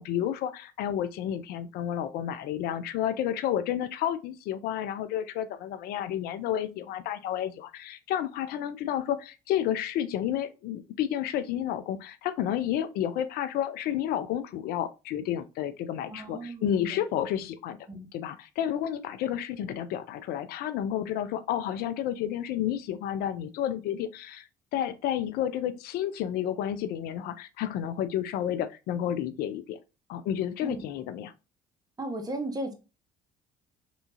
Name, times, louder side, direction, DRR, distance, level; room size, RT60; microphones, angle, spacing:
voice 1, 0.0-17.8 18.1-29.8 30.1-31.3, left 10 dB, 65° left, 0.4 m, -31 dB
voice 2, 16.1-17.0 17.9-18.1 30.6-30.8 32.0-32.7, right 1 dB, 20° right, 0.9 m, -35 dB
3.4 x 2.8 x 2.7 m
hypercardioid pair, 60°, 17 cm